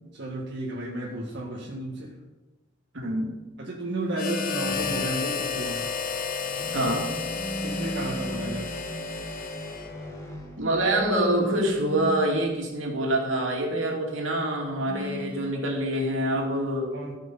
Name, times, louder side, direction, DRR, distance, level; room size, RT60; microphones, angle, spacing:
voice 1, 0.1-2.2 3.6-5.9 7.6-8.8 16.9-17.1, right 1 dB, 65° right, -3 dB, 1.7 m, -33 dB
voice 2, 2.9-3.3 6.7-7.0 10.5-16.9, right 1 dB, 80° right, 0 dB, 2.8 m, -26 dB
sound 1, 3.9-5.2 7.4-8.8 10.9-12.4 14.9-15.5, equal, 5° right, 0.4 m, -35 dB
Harmonica, 4.1-10.2, left 6 dB, 45° left, 1.1 m, -32 dB
sound 2, 4.6-12.8, left 1 dB, 15° left, 2.2 m, -41 dB
16.0 x 6.5 x 5.5 m, 1.1 s
head